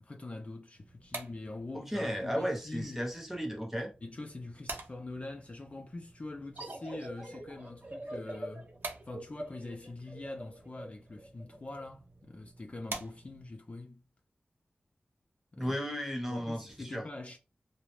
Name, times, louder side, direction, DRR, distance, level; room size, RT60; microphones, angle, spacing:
voice 1, 0.0-3.1 4.0-8.7 9.1-14.0 15.5-15.8 16.3-17.4, left 2 dB, 40° left, 0.4 m, -44 dB
sound 1, 0.7-13.6, right 3 dB, 80° right, 0.5 m, -49 dB
voice 2, 1.7-3.9 15.6-17.0, equal, 5° right, 0.8 m, -34 dB
sound 2, 6.6-11.9, right 1 dB, 40° right, 0.7 m, -44 dB
2.4 x 2.0 x 3.0 m
wide cardioid pair, 60°, 4 cm